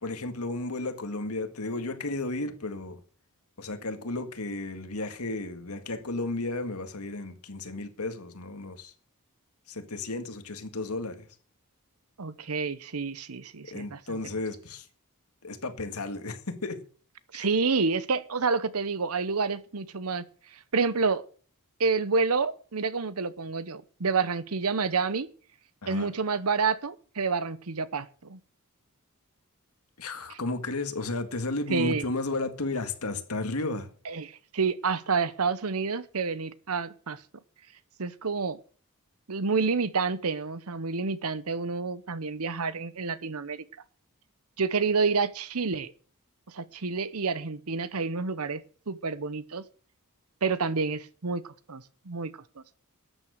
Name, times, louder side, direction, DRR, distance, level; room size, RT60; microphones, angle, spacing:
voice 1, 0.0-3.0 3.6-8.9 9.7-11.3 13.7-14.9 15.4-16.8 17.3-17.5 25.8-26.1 30.0-33.9, left 2 dB, 90° left, 1.9 m, -33 dB
voice 2, 12.2-14.2 17.3-20.2 20.7-21.2 21.8-25.3 25.9-28.4 30.3-30.4 31.7-32.0 34.0-37.2 38.0-38.6 39.3-43.6 44.6-45.9 46.5-48.6 48.9-49.6 50.4-51.4 51.7-52.3, right 4 dB, 85° right, 0.9 m, -29 dB
13.0 x 9.1 x 6.5 m
head